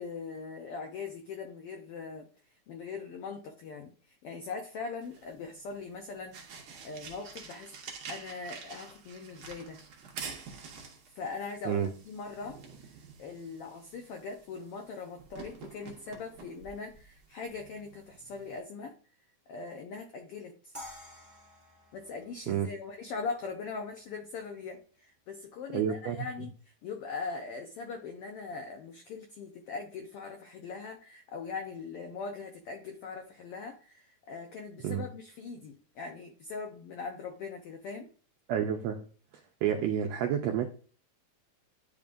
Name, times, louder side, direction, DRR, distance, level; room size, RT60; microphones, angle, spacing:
voice 1, 0.0-2.3 2.7-7.7 8.1-9.8 11.1-12.6 13.2-18.9 19.5-20.7 21.9-38.1, left 4 dB, 80° left, 1.3 m, -41 dB
sound 1, 5.0-18.6, right 5 dB, 60° right, 1.4 m, -48 dB
sound 2, 20.7-23.8, left 1 dB, 10° right, 0.8 m, -50 dB
voice 2, 25.7-26.3 34.8-35.0 38.5-39.0 39.6-40.7, right 9 dB, 90° right, 1.5 m, -29 dB
10.5 x 3.7 x 2.5 m
omnidirectional pair, 3.6 m